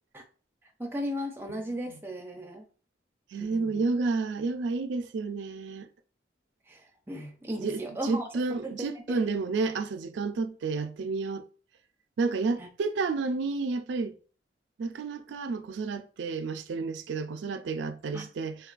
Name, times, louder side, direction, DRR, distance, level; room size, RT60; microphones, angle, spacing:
voice 1, 0.8-2.6 3.4-3.8 6.7-9.2 12.6-12.7 18.1-18.2, equal, 10° right, 0.4 m, -36 dB
voice 2, 3.3-5.9 7.6-11.4 12.2-14.1 14.8-18.6, right 4 dB, 75° right, 0.3 m, -30 dB
3.6 x 2.2 x 2.4 m
head